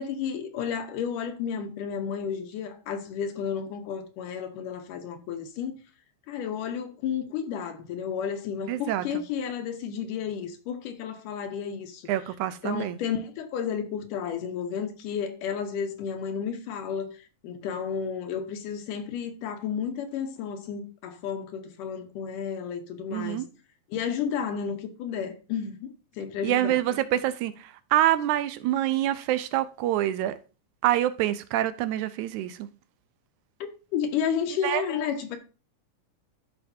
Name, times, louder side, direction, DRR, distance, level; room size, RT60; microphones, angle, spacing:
voice 1, 0.0-5.8 6.3-12.1 12.6-17.1 17.4-23.4 23.9-26.8 33.9-35.4, left 7 dB, 85° left, 2.6 m, -32 dB
voice 2, 8.7-9.2 12.1-13.0 23.1-23.5 26.4-30.4 30.8-32.7 34.6-34.8, right 13 dB, 80° right, 1.9 m, -26 dB
13.5 x 5.0 x 2.7 m
omnidirectional pair, 3.7 m